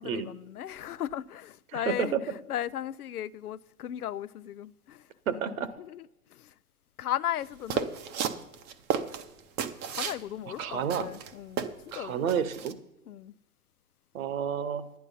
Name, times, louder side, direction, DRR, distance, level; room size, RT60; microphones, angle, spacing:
voice 1, 0.0-5.0 5.3-5.4 5.8-6.0 6.3-6.5 7.0-7.9 9.9-12.4 13.1-13.3, left 11 dB, 85° left, 0.6 m, -36 dB
voice 2, 1.7-2.2 5.3-5.7 10.5-11.1 11.9-12.8 14.1-14.8, right 8 dB, 65° right, 1.2 m, -30 dB
sound 1, 7.7-10.2 10.6-10.7 10.9-12.0 12.3-12.7, right 7 dB, 25° right, 0.7 m, -32 dB
11.0 x 9.8 x 5.4 m
hypercardioid pair, 120°, 44 cm